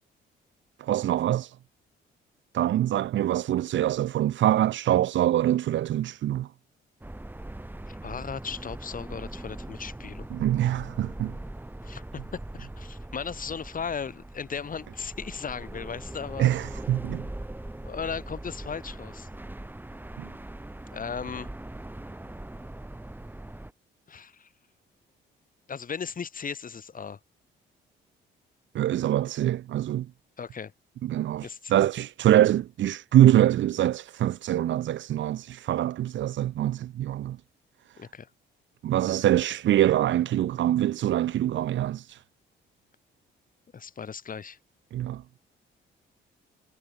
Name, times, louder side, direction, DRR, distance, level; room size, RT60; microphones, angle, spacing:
voice 1, 0.8-1.6 2.5-6.5 10.3-11.4 16.4-17.3 20.2-20.3 28.7-30.1 31.0-37.4 38.8-42.2 44.9-45.4, right 12 dB, 70° right, 1.2 m, -24 dB
sound 1, 7.0-23.7, right 1 dB, 10° right, 4.4 m, -41 dB
voice 2, 7.9-10.3 11.8-16.5 17.8-19.3 20.9-21.5 24.1-24.5 25.7-27.2 30.4-30.7 31.4-31.8 38.0-38.3 43.7-44.6, left 6 dB, 45° left, 6.1 m, -36 dB
cardioid pair, 90°, 20 cm